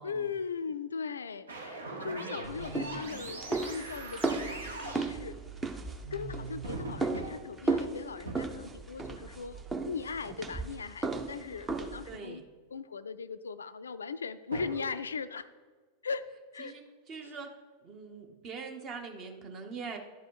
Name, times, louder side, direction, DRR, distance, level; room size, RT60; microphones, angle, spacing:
voice 1, 0.0-5.4 6.1-12.4 12.7-15.5 16.0-16.3 16.5-16.7 17.2-17.4, left 5 dB, 70° left, 13 dB, 0.3 m, -39 dB
sound 1, 1.5-5.2 6.0-7.3 7.8-7.9 8.3-8.5 9.0-9.2 11.6-11.9 14.5-14.9, right 3 dB, 70° right, 1.2 m, -41 dB
sound 2, 2.4-12.2, right 3 dB, 15° right, 0.7 m, -36 dB
voice 2, 12.1-12.4 16.6-16.8 17.1-17.5 17.8-20.0, right 5 dB, 35° right, 4 dB, 1.1 m, -42 dB
11.0 x 4.7 x 4.7 m, 1.4 s
figure-of-eight pair, 90°, 0 cm